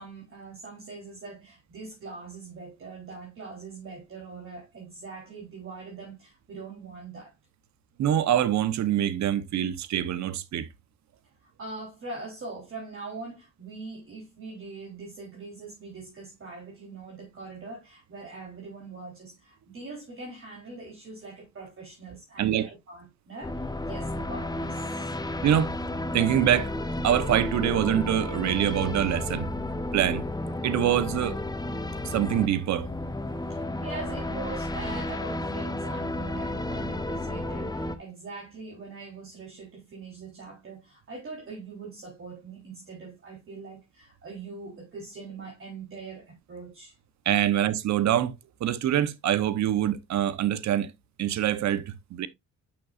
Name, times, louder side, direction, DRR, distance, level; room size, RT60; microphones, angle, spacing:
voice 1, 0.0-7.3 11.6-25.1 33.5-46.9, right 3 dB, 45° right, 3.5 m, -42 dB
voice 2, 8.0-10.7 22.4-22.7 25.4-25.7 26.1-26.7 27.0-29.5 29.9-30.2 30.6-31.4 32.0-32.9 47.3-50.9 51.2-52.3, right 11 dB, 65° right, 0.9 m, -25 dB
sound 1, 23.4-38.0, left 1 dB, 15° left, 0.9 m, -32 dB
9.0 x 6.1 x 2.4 m
cardioid pair, 90°, 30 cm